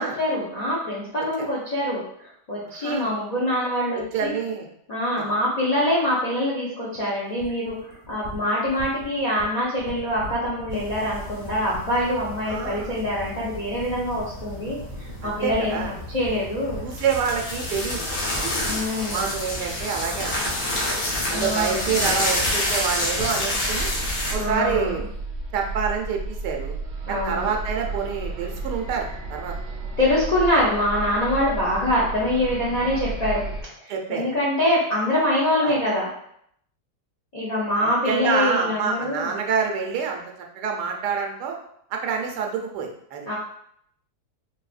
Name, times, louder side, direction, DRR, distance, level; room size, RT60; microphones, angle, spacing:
voice 1, 0.0-4.3 4.9-15.8 16.1-16.8 18.6-19.3 21.3-22.0 24.3-25.0 27.1-27.5 30.0-33.4 34.1-36.1 37.3-39.3 43.3-43.4, left 1 dB, 45° left, -6 dB, 0.5 m, -24 dB
voice 2, 2.7-3.1 3.9-4.7 5.2-5.3 12.4-12.9 15.2-15.9 16.8-18.0 18.3-18.5 19.0-20.5 21.3-23.9 24.3-25.0 25.5-26.8 27.1-29.5 33.9-34.3 35.6-35.7 38.1-40.2 40.5-41.6 41.9-43.3, right 6 dB, 85° right, 2 dB, 1.2 m, -27 dB
sound 1, 7.4-25.1, equal, 25° right, 0.9 m, -40 dB
sound 2, 10.7-24.3, left 1 dB, 65° left, 1.4 m, -29 dB
sound 3, 23.5-33.6, right 3 dB, 60° right, 0.7 m, -33 dB
3.8 x 2.7 x 2.4 m, 0.70 s
omnidirectional pair, 1.8 m